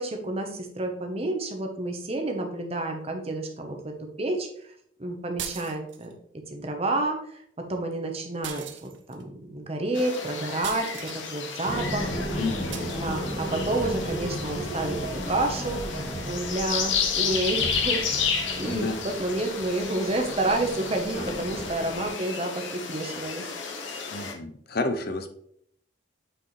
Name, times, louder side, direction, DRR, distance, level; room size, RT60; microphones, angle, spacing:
voice 1, 0.0-4.7 5.0-6.1 6.5-12.4 12.8-23.4, right 2 dB, 30° right, 4 dB, 1.0 m, -30 dB
sound 1, 5.4-6.1 8.4-9.2 10.6-11.2 12.7-13.0, right 9 dB, 65° right, 0.6 m, -38 dB
sound 2, 9.9-24.3, left 6 dB, 70° left, 1.0 m, -32 dB
sound 3, 11.6-22.1, equal, 35° left, 1.8 m, -34 dB
voice 2, 12.4-12.8 18.6-19.0 24.1-25.3, left 2 dB, 50° left, 8 dB, 0.6 m, -30 dB
8.0 x 4.7 x 3.2 m, 0.67 s
head